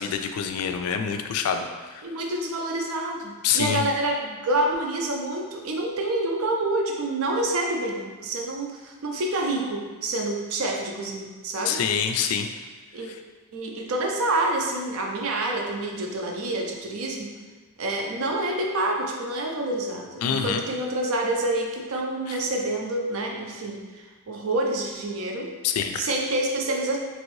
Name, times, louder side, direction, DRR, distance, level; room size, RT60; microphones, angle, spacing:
voice 1, 0.0-2.0 3.4-3.8 11.6-12.5 13.0-13.2 20.2-20.6 22.3-22.4 25.6-26.1, left 7 dB, 80° left, 8 dB, 0.3 m, -26 dB
voice 2, 2.0-11.8 12.9-13.1 13.5-17.3 17.8-25.5 26.0-27.0, right 2 dB, 70° right, 1 dB, 0.5 m, -27 dB
3.0 x 2.6 x 3.1 m, 1.4 s
head